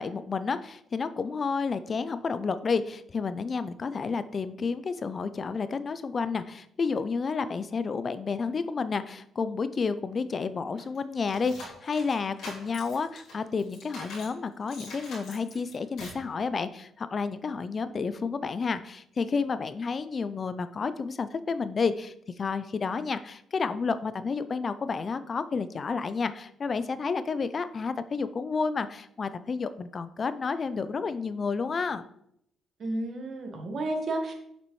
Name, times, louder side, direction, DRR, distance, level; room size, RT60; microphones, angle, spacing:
voice 1, 0.0-32.0, left 5 dB, 40° left, 13 dB, 0.4 m, -30 dB
sound 1, 10.8-14.4 14.7-16.3, left 2 dB, 75° left, 2.8 m, -44 dB
voice 2, 32.8-34.3, right 2 dB, 50° right, 3 dB, 1.5 m, -31 dB
6.8 x 6.0 x 3.1 m, 0.73 s
cardioid pair, 90°, 0 cm